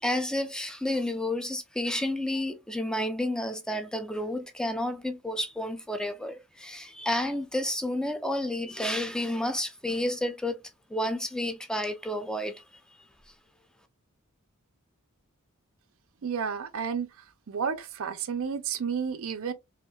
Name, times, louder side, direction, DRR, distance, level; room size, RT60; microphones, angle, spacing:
voice 1, 0.0-10.6 10.9-12.6, left 1 dB, 5° left, 0.3 m, -30 dB
voice 2, 16.2-17.1 17.5-19.5, right 6 dB, 65° right, 0.5 m, -31 dB
4.3 x 2.4 x 2.2 m
head